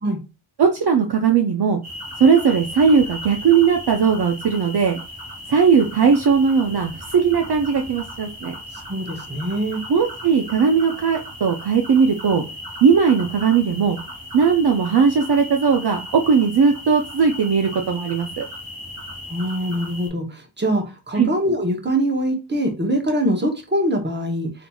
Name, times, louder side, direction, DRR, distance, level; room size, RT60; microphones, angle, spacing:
voice 1, 0.6-1.8 2.2-5.0 5.5-8.5 9.9-12.4 12.8-14.0 14.3-18.4 21.2-21.3, right 6 dB, 55° right, 0.5 m, -18 dB
sound 1, 1.8-20.1, left 1 dB, 85° right, 1.7 m, -37 dB
voice 2, 8.9-9.8 19.3-24.5, right 1 dB, 20° right, 0.8 m, -23 dB
4.2 x 2.7 x 2.3 m
wide cardioid pair, 80°, 49 cm